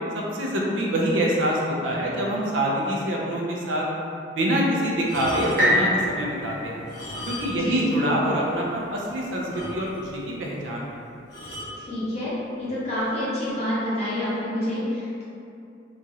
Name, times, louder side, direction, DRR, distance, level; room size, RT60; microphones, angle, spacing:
voice 1, 0.3-3.8 4.4-6.8 7.3-11.0, right 1 dB, 85° right, -3 dB, 0.5 m, -25 dB
sound 1, 5.0-5.8 6.8-7.8 8.0-8.2 8.7-8.8 9.0-9.1 9.5-10.2 11.3-11.8 12.6-12.9, left 1 dB, 60° left, 0.9 m, -36 dB
sound 2, 5.6-9.5 10.1-10.2, equal, 45° right, 0.7 m, -27 dB
voice 2, 7.5-7.8 11.8-15.2, left 1 dB, 35° left, -12 dB, 1.1 m, -28 dB
2.9 x 2.4 x 2.7 m, 2.6 s
head